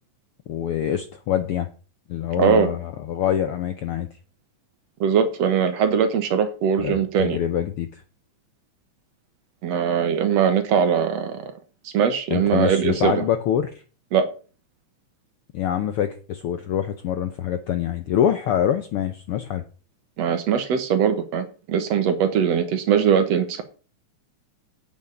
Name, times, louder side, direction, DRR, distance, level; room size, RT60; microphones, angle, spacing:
voice 1, 0.5-1.7 2.1-4.1 6.8-8.0 12.3-13.8 15.5-19.6, left 10 dB, 75° left, 9 dB, 1.3 m, -25 dB
voice 2, 2.4-2.7 5.0-7.4 9.6-11.5 11.9-13.3 14.1-14.3 20.2-23.6, right 7 dB, 65° right, 9 dB, 2.2 m, -21 dB
9.0 x 6.6 x 7.0 m, 0.37 s
omnidirectional pair, 3.4 m